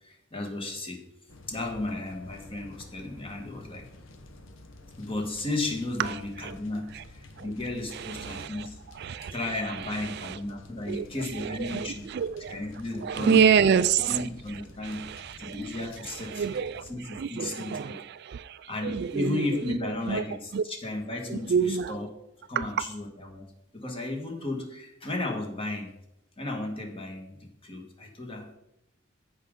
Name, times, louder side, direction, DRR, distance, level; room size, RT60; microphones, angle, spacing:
voice 1, 0.0-1.0 1.5-3.9 5.0-8.8 9.3-12.1 12.5-13.8 14.1-15.1 15.4-16.5 16.9-17.9 18.7-22.1 22.5-23.5 23.7-25.9 26.4-28.5, left 2 dB, 30° left, 1.6 m, -34 dB
sound 1, 1.3-17.0, left 2 dB, 75° left, 1.0 m, -50 dB
voice 2, 7.9-8.7 9.0-9.3 9.7-10.4 10.9-12.6 13.0-14.3 14.8-20.2 20.5-20.6 21.3-21.9 22.6-22.7, right 7 dB, 55° right, 0.3 m, -28 dB
14.0 x 5.2 x 3.7 m
head